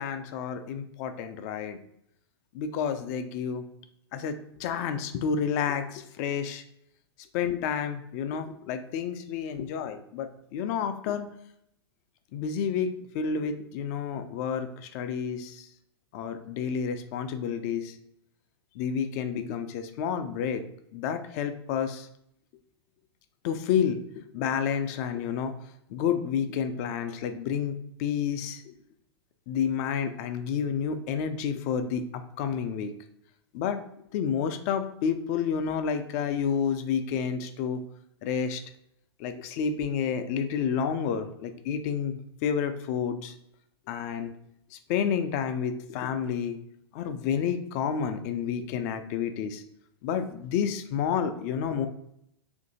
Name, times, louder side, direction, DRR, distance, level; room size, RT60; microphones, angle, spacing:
voice 1, 0.0-1.8 2.5-3.6 4.1-4.3 4.6-6.6 7.3-11.3 12.3-15.7 16.1-17.9 18.8-20.6 20.9-22.1 23.4-25.6 25.9-28.7 29.5-32.9 33.5-33.8 34.1-37.8 38.2-38.6 39.2-43.3 43.9-44.3 44.7-46.6 46.9-49.6 50.0-51.9, left 7 dB, 40° left, 9 dB, 0.4 m, -30 dB
2.7 x 2.6 x 3.9 m, 0.75 s
figure-of-eight pair, 100°, 14 cm